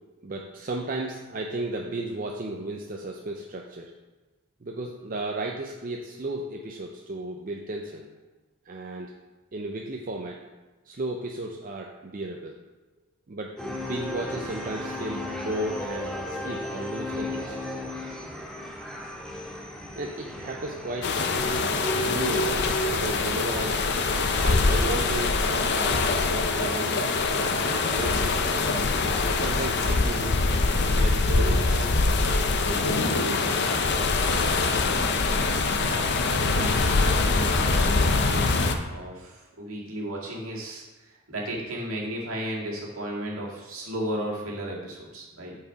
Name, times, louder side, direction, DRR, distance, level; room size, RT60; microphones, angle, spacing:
voice 1, 0.2-3.9 4.6-8.1 8.7-9.1 9.5-10.4 10.9-12.5 13.3-17.5 20.0-21.1 22.1-23.8 24.4-27.1 27.8-28.5 29.3-30.3 30.8-32.0 32.6-33.6 41.5-41.7, right 2 dB, 40° right, 0 dB, 0.5 m, -34 dB
sound 1, 13.6-22.9, left 1 dB, 5° left, 1.8 m, -34 dB
sound 2, 21.0-38.7, left 3 dB, 50° left, 0.6 m, -24 dB
voice 2, 35.7-36.1 36.4-38.6 38.9-45.6, right 1 dB, 75° right, -3 dB, 1.9 m, -35 dB
8.4 x 4.8 x 4.6 m, 1.2 s
head